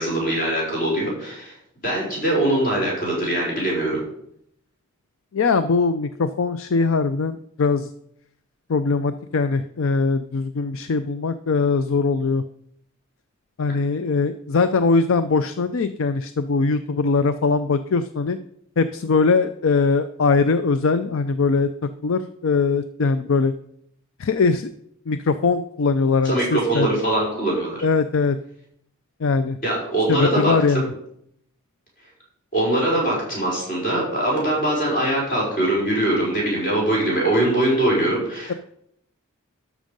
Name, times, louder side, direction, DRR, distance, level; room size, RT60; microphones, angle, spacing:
voice 1, 0.0-1.5 1.8-4.0 26.2-27.8 29.6-30.9 32.5-38.6, right 1 dB, 40° left, -3 dB, 5.2 m, -22 dB
voice 2, 5.3-7.9 8.7-12.4 13.6-18.4 18.8-21.7 22.0-23.5 24.2-24.7 25.1-26.9 27.8-28.4 29.2-29.6 30.1-30.8, left 4 dB, 60° left, 11 dB, 0.4 m, -21 dB
12.5 x 6.2 x 5.2 m, 0.72 s
head